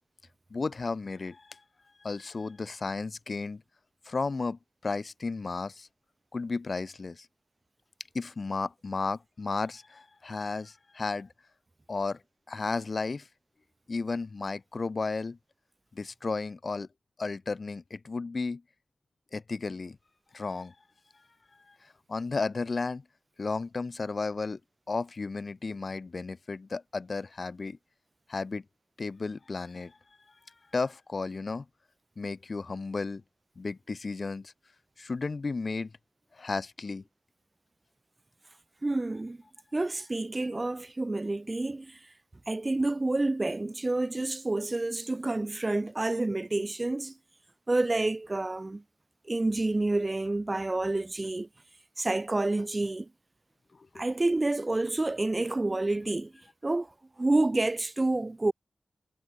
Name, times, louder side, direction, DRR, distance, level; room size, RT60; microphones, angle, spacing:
voice 1, 0.5-1.6 2.0-3.6 4.0-5.9 6.3-7.3 8.1-11.3 11.9-12.2 12.5-13.3 13.9-15.4 15.9-16.9 17.2-18.6 19.3-20.0 20.3-20.7 21.7-23.0 23.4-24.6 24.9-27.8 28.3-28.6 29.0-30.0 30.7-31.6 32.2-33.2 33.6-34.5 35.0-35.9 36.3-37.0 53.7-53.9, left 4 dB, 55° left, 2.3 m, -33 dB
voice 2, 38.8-39.4 39.7-42.1 42.5-47.2 47.7-48.8 49.2-51.5 52.0-53.1 54.0-56.3 56.6-58.5, right 2 dB, 30° right, 3.6 m, -29 dB
wide cardioid pair, 65°, 0 cm